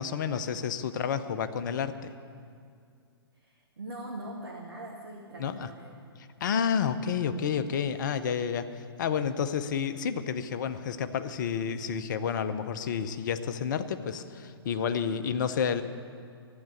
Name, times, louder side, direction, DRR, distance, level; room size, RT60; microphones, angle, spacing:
voice 1, 0.0-2.1 5.4-5.7 6.4-8.7 9.0-15.8, left 7 dB, 50° left, 11 dB, 0.7 m, -30 dB
voice 2, 3.3-5.9, right 1 dB, 65° right, 0 dB, 1.6 m, -42 dB
12.0 x 8.9 x 9.4 m, 2.3 s
figure-of-eight pair, 115°, 13 cm